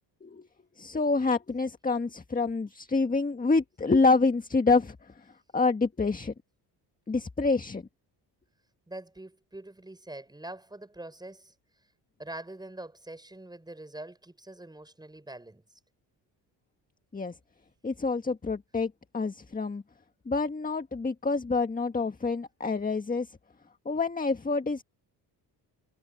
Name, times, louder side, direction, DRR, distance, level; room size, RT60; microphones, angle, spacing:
voice 1, 0.8-6.3 7.1-7.8 17.1-17.4 17.8-19.8 20.3-23.4 23.9-24.8, left 3 dB, 20° left, 1.7 m, -27 dB
voice 2, 8.9-11.5 12.2-15.6, right 1 dB, 10° right, 7.3 m, -44 dB
cardioid pair, 90°, 42 cm